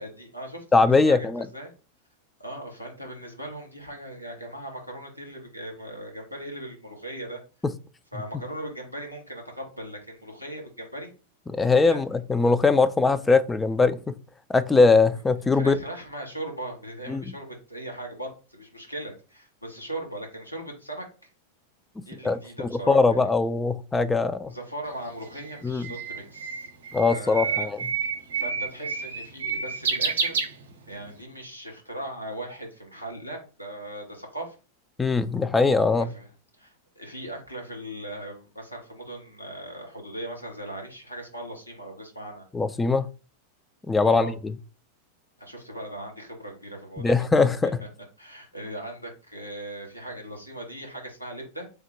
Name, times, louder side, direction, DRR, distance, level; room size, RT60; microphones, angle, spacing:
voice 1, 0.0-1.7 2.4-7.4 8.1-11.1 11.9-12.0 15.5-21.3 22.0-23.2 24.5-26.7 26.9-27.7 28.3-30.4 30.9-34.5 36.0-36.3 36.6-42.4 44.0-44.3 45.4-47.2 48.2-51.7, right 1 dB, 90° left, 1.0 m, -39 dB
voice 2, 0.7-1.5 7.6-7.7 11.5-14.1 14.5-15.7 17.1-17.2 22.0-24.5 25.6-25.9 26.9-27.8 35.0-36.1 42.5-43.1 43.9-44.3 47.0-47.8, left 4 dB, 10° left, 0.3 m, -21 dB
Bird, 24.9-31.1, right 5 dB, 65° right, 0.5 m, -29 dB
3.4 x 2.1 x 4.3 m
figure-of-eight pair, 90°, 0 cm